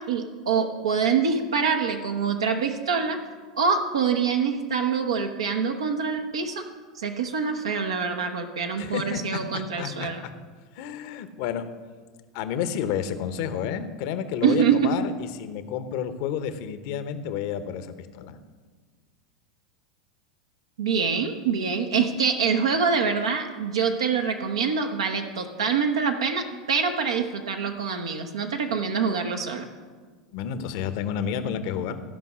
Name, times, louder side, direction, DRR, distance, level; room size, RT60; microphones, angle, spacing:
voice 1, 0.0-3.2 3.6-6.6 7.0-10.2 14.4-15.0 20.8-29.6, right 6 dB, 80° right, 4 dB, 0.9 m, -25 dB
voice 2, 8.8-10.3 10.7-11.7 12.3-15.1 15.4-18.4 30.3-32.0, left 8 dB, 60° left, 10 dB, 0.9 m, -30 dB
14.5 x 5.3 x 6.1 m, 1.5 s
hypercardioid pair, 90°, 3 cm